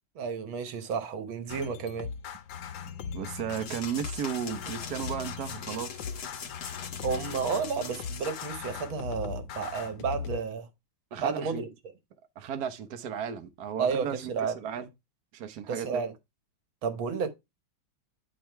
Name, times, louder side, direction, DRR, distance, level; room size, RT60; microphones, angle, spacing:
voice 1, 0.2-2.1 7.0-10.7 11.2-11.7 13.8-14.6 15.7-16.1 16.8-17.3, right 5 dB, 80° right, 1.9 m, -31 dB
sound 1, 1.5-10.4, left 7 dB, 70° left, 1.6 m, -39 dB
voice 2, 3.1-6.0 11.1-11.6 12.4-14.9 15.3-16.0, right 8 dB, 60° right, 1.3 m, -35 dB
sound 2, 3.5-8.5, left 7 dB, 55° left, 1.4 m, -42 dB
10.0 x 3.8 x 4.5 m
omnidirectional pair, 2.2 m